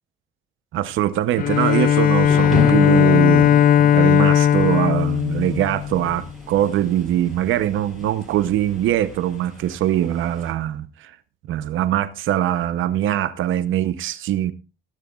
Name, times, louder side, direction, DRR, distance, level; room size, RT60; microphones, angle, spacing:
voice 1, 0.7-3.5 3.9-11.2 11.5-14.5, right 12 dB, 80° right, 0.8 m, -22 dB
Bowed string instrument, 1.4-6.2, left 10 dB, 45° left, 0.6 m, -17 dB
Thunder / Rain, 1.5-10.5, equal, ahead, 7.7 m, -32 dB
17.5 x 11.0 x 2.4 m
cardioid pair, 105°, 20 cm